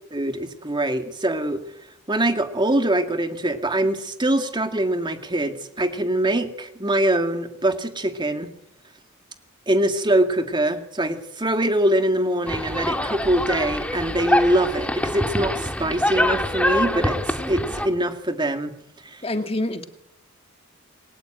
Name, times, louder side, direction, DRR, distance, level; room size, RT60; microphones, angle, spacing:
voice 1, 0.1-1.6 2.1-8.5 9.7-18.7 19.0-19.2, right 1 dB, 20° right, 7 dB, 2.2 m, -23 dB
sound 1, 12.5-17.9, left 1 dB, 5° left, 2.1 m, -25 dB
voice 2, 19.2-19.9, left 1 dB, 30° left, 7 dB, 1.9 m, -26 dB
28.5 x 22.5 x 9.1 m, 0.87 s
head